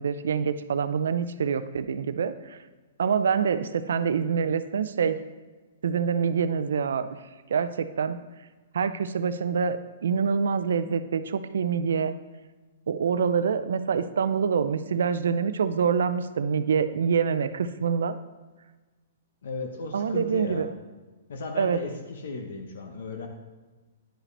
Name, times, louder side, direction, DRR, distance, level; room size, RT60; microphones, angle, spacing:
voice 1, 0.0-2.6 3.0-5.2 5.8-7.1 7.5-8.2 8.7-12.1 12.9-18.2 19.9-20.7 21.6-21.8, right 6 dB, 85° right, 12 dB, 0.4 m, -26 dB
voice 2, 19.4-20.7 21.3-23.3, left 3 dB, 70° left, 4 dB, 0.9 m, -35 dB
10.0 x 4.9 x 3.3 m, 1.3 s
hypercardioid pair, 170°, 0 cm